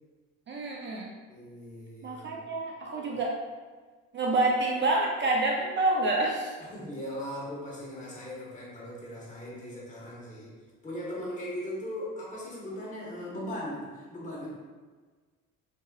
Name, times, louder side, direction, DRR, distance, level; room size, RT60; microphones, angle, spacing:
voice 1, 0.5-1.1 2.0-3.4 4.1-6.5, right 2 dB, 40° right, -1 dB, 0.4 m, -27 dB
voice 2, 1.3-2.5 3.1-3.2 6.6-10.6 10.8-14.5, equal, 25° left, -6 dB, 1.2 m, -39 dB
3.5 x 3.2 x 2.2 m, 1.4 s
cardioid pair, 110°, 31 cm